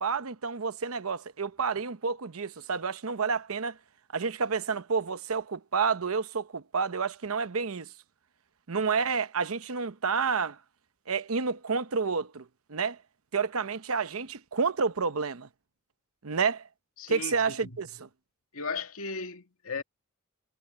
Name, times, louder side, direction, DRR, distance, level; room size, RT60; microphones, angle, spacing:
voice 1, 0.0-3.8 4.1-7.9 8.7-10.6 11.1-13.0 13.3-15.5 16.2-16.7 17.1-18.1, right 5 dB, 85° right, 0.9 m, -29 dB
voice 2, 17.0-17.8 18.5-19.8, left 4 dB, 85° left, 2.1 m, -36 dB
head